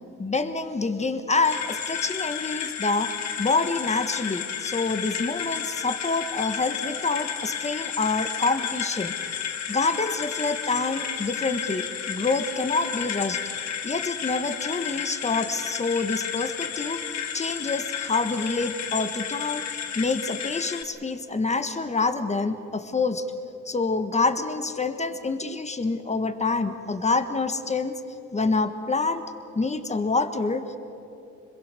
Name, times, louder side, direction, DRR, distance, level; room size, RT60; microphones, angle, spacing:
voice 1, 0.2-3.1 3.4-9.1 9.7-13.4 13.8-17.0 17.3-19.6 19.9-23.2 23.6-28.0 28.3-29.2 29.5-30.8, left 3 dB, 20° left, 9 dB, 1.6 m, -27 dB
sound 1, 1.4-20.8, left 8 dB, 65° left, 1.6 m, -32 dB
26.0 x 22.0 x 6.8 m, 2.7 s
cardioid pair, 90°, 30 cm